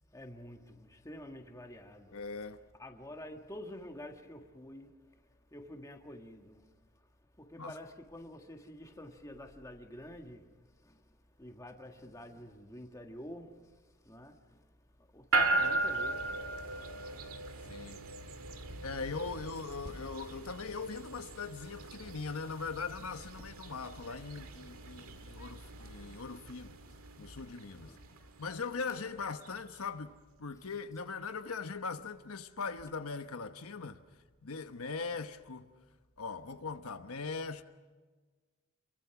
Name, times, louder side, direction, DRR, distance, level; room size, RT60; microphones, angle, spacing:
voice 1, 0.1-2.5 2.8-5.0 5.5-6.6 7.4-10.5 10.8-11.0 11.4-13.7 14.0-14.6 15.0-16.7 17.1-17.2 19.1-19.4 22.6-22.7 27.8-28.0 28.9-29.0 30.6-30.8 32.7-32.8, left 1 dB, 15° left, 1.7 m, -48 dB
voice 2, 2.1-2.6 7.6-7.8 17.7-18.0 18.8-26.8 27.2-27.9 28.4-30.1 30.4-34.0 34.4-35.7 36.2-37.6, left 4 dB, 85° left, 1.1 m, -40 dB
sound 1, 15.3-29.6, right 2 dB, 80° right, 2.0 m, -38 dB
28.5 x 23.5 x 6.0 m
head